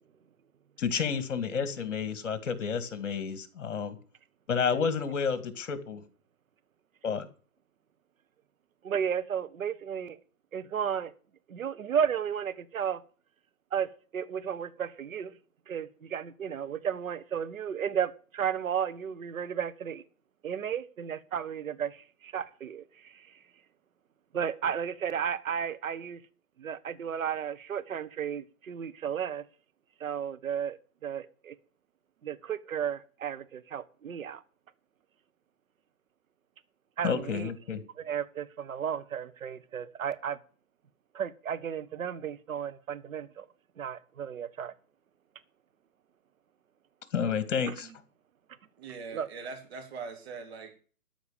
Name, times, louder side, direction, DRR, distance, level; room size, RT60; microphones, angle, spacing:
voice 1, 0.8-4.0 4.5-6.0 7.0-7.3 37.0-37.8 47.1-47.9, left 6 dB, 55° left, 2.2 m, -30 dB
voice 2, 8.8-10.2 10.5-11.1 11.5-13.0 13.7-15.3 15.7-20.0 20.4-23.3 24.3-26.2 26.6-29.4 30.0-31.5 32.2-34.4 37.0-37.5 38.0-40.4 41.1-43.4 43.8-44.7 47.7-47.8 49.1-49.3, right 8 dB, 65° right, 1.5 m, -33 dB
voice 3, 48.8-50.7, right 5 dB, 45° right, 3.9 m, -42 dB
13.0 x 6.0 x 9.0 m
hypercardioid pair, 150°, 43 cm